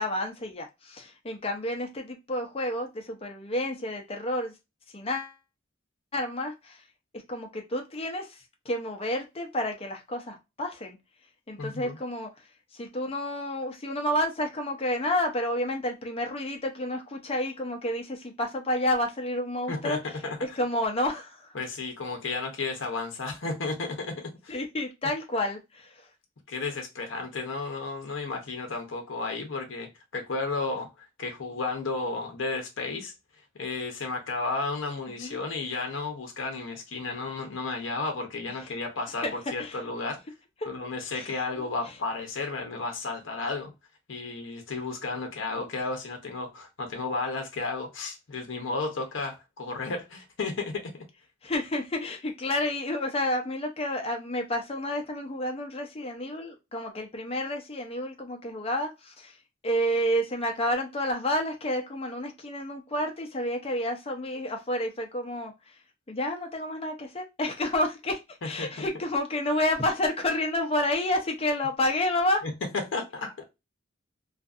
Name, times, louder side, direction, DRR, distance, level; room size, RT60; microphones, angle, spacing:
voice 1, 0.0-4.5 4.9-5.3 6.1-6.8 7.3-8.4 8.7-11.0 11.5-12.3 12.7-20.0 20.4-21.5 24.5-26.0 35.2-35.4 38.6-38.7 39.2-39.8 41.1-41.7 51.4-59.4 59.6-65.5 66.1-68.2 68.4-72.4, left 1 dB, 30° left, 0.6 m, -30 dB
voice 2, 11.6-12.0 19.7-20.6 21.5-24.6 26.5-33.1 33.6-40.2 40.7-43.7 44.1-50.9 68.4-68.9 72.4-72.5 72.9-73.4, left 3 dB, 70° left, 0.7 m, -33 dB
2.6 x 2.5 x 2.4 m
head